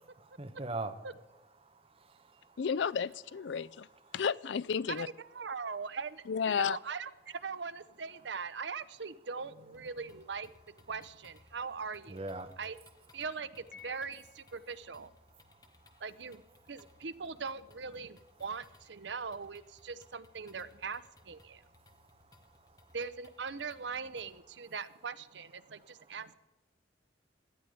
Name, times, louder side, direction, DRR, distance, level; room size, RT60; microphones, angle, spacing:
voice 1, 0.3-0.9 1.6-2.6 4.0-4.2 12.1-12.6 15.5-15.6 15.8-16.0 21.9-22.9 25.7-26.1, right 2 dB, 30° right, 8 dB, 1.1 m, -43 dB
voice 2, 2.6-3.9 4.1-5.1 6.3-6.8, left 6 dB, 75° left, 21 dB, 0.4 m, -32 dB
voice 3, 4.9-10.5 10.9-12.2 12.6-12.8 13.1-15.1 16.0-16.4 16.7-21.6 22.9-26.3, right 5 dB, 70° right, 13 dB, 0.8 m, -41 dB
sound 1, 9.7-24.4, left 2 dB, 20° left, 1.2 m, -64 dB
Piano, 13.7-14.8, left 8 dB, 50° left, 1.9 m, -54 dB
17.5 x 12.0 x 5.1 m, 1.1 s
head